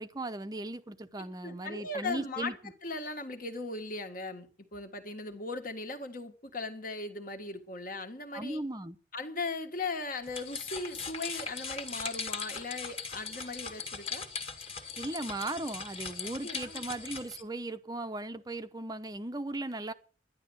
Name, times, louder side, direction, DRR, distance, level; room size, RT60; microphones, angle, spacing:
voice 1, 0.0-2.6 8.3-9.0 15.0-19.9, right 2 dB, 20° right, 0.7 m, -37 dB
voice 2, 1.4-2.5 2.8-8.6 9.1-14.3 16.4-16.8, left 3 dB, 45° left, 1.7 m, -38 dB
sound 1, 10.2-17.4, left 5 dB, 30° left, 2.0 m, -39 dB
11.5 x 10.5 x 8.0 m
head